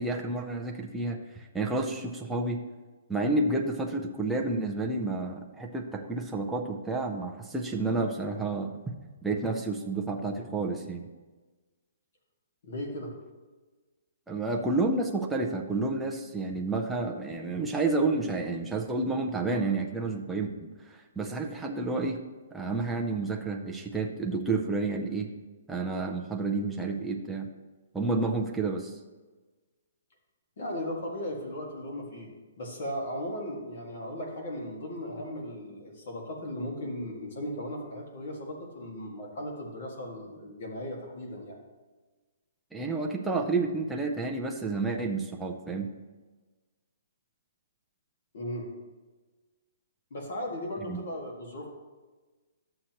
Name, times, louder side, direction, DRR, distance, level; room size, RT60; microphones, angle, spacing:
voice 1, 0.0-2.6 3.1-8.7 9.2-11.1 14.3-22.2 22.5-25.3 25.7-27.5 27.9-29.0 42.7-45.9 50.9-51.0, right 3 dB, 5° right, 0 dB, 0.4 m, -30 dB
voice 2, 12.6-13.2 30.6-32.3 32.6-41.6 48.3-48.7 50.1-51.7, left 1 dB, 45° left, 0 dB, 1.8 m, -37 dB
11.0 x 7.6 x 3.0 m, 1.3 s
hypercardioid pair, 180°, 0 cm